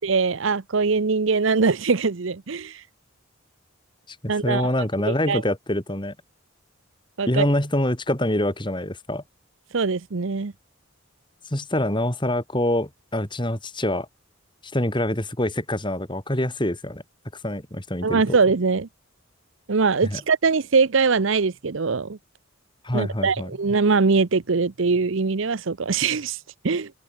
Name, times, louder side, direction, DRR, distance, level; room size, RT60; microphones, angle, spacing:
voice 1, 0.0-2.8 4.3-4.7 5.1-5.4 7.2-7.5 9.7-10.5 18.0-18.9 19.7-22.2 22.9-26.4 26.6-26.9, right 4 dB, 65° right, 0.7 m, -22 dB
voice 2, 4.4-6.1 7.3-9.2 11.5-14.1 14.6-17.0 17.4-18.4 20.0-20.2 22.8-23.5, left 1 dB, 25° left, 3.1 m, -25 dB
open air
head